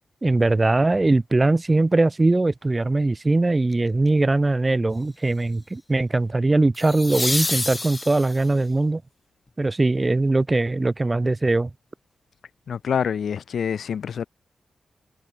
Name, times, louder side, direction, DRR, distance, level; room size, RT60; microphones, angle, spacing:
voice 1, 0.2-9.0 9.6-11.7, right 2 dB, 30° right, 1.0 m, -21 dB
sound 1, 3.7-4.1 6.7-8.6 11.5-11.6, left 2 dB, 30° left, 1.6 m, -28 dB
voice 2, 12.7-14.2, left 7 dB, 75° left, 0.5 m, -26 dB
supercardioid pair, 40°, 0 cm